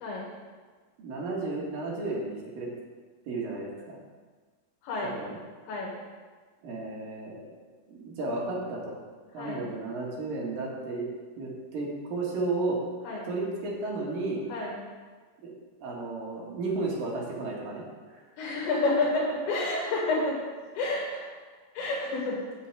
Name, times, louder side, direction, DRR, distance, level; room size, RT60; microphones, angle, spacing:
voice 1, 1.0-2.7 3.3-4.0 5.1-5.4 6.6-7.5 7.9-9.0 9.3-11.1 11.4-12.8 13.3-14.4 15.4-15.5 15.8-17.8 18.1-18.2, right 3 dB, 55° right, -3 dB, 3.1 m, -33 dB
voice 2, 18.4-20.4 20.8-21.3 21.7-22.4, left 2 dB, 70° left, -4 dB, 3.8 m, -29 dB
8.1 x 7.1 x 7.8 m, 1.4 s
omnidirectional pair, 5.5 m